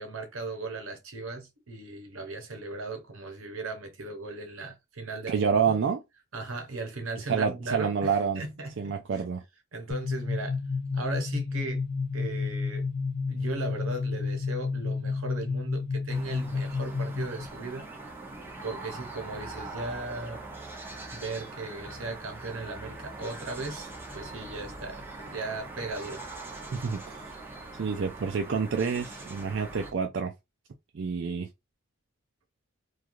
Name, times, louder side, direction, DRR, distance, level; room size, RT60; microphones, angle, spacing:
voice 1, 0.0-5.8 6.3-9.0 9.7-10.6 10.9-11.8 12.1-12.9 13.3-17.8 18.6-20.4 21.1-26.2, right 3 dB, 90° right, 0.9 m, -37 dB
voice 2, 5.3-6.0 7.3-8.4 8.8-9.4 26.7-27.3 27.8-30.3 30.9-31.5, right 6 dB, 65° right, 0.4 m, -28 dB
sound 1, 9.9-17.5, left 4 dB, 30° left, 0.4 m, -31 dB
sound 2, 16.1-29.9, right 2 dB, 10° right, 0.7 m, -42 dB
3.2 x 2.4 x 2.5 m
head